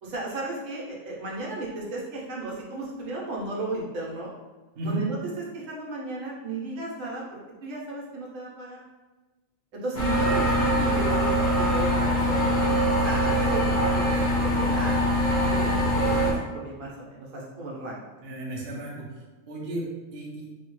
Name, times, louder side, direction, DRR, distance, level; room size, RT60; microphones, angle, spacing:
voice 1, 0.0-4.3 4.8-5.2 5.5-8.8 9.7-15.0 15.5-18.0, right 2 dB, 70° right, -3 dB, 1.1 m, -35 dB
sound 1, 9.9-16.3, equal, 35° left, 0.5 m, -23 dB
voice 2, 18.2-20.5, right 2 dB, 55° right, -3 dB, 0.8 m, -34 dB
3.2 x 2.1 x 3.0 m, 1.2 s
omnidirectional pair, 1.4 m